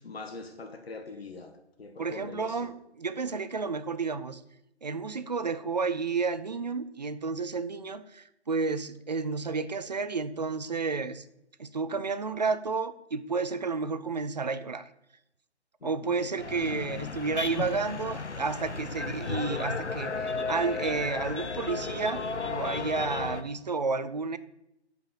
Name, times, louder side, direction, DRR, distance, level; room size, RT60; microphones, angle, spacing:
voice 1, 0.0-2.7 15.8-16.3, left 3 dB, 65° left, 4 dB, 1.2 m, -43 dB
voice 2, 2.0-4.4 4.8-11.2 11.6-14.9 15.8-24.4, right 4 dB, 40° right, 13 dB, 0.5 m, -31 dB
sound 1, 16.4-23.4, left 4 dB, 85° left, 0.8 m, -34 dB
7.1 x 5.2 x 6.4 m, 0.81 s
figure-of-eight pair, 145°, 34 cm